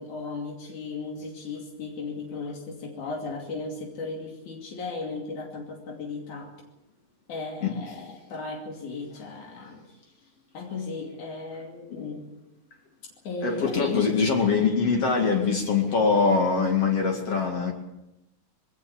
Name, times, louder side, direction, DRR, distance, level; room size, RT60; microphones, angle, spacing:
voice 1, 0.0-6.5 7.3-10.0 10.5-12.3 13.2-14.2, left 3 dB, 80° left, 0 dB, 4.1 m, -35 dB
voice 2, 13.4-17.7, left 5 dB, 55° left, 2 dB, 3.3 m, -23 dB
21.5 x 18.0 x 7.2 m, 0.89 s
omnidirectional pair, 3.4 m